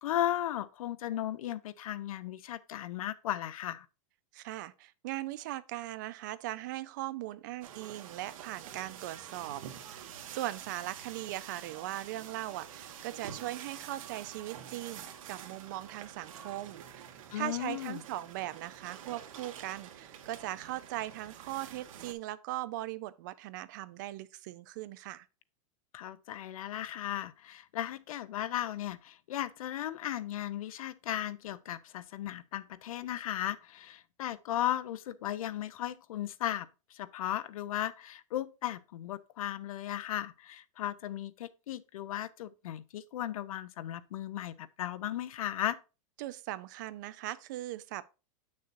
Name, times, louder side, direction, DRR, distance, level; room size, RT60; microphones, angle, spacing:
voice 1, 0.0-3.9 17.3-18.0 25.9-45.8, left 12 dB, 80° left, 0.7 m, -36 dB
voice 2, 4.3-10.0 10.3-17.1 17.3-25.3 46.2-48.0, right 15 dB, 35° right, 0.4 m, -39 dB
sound 1, 7.6-22.1, right 9 dB, 70° right, 1.4 m, -48 dB
8.1 x 6.5 x 2.6 m
supercardioid pair, 175°, 18 cm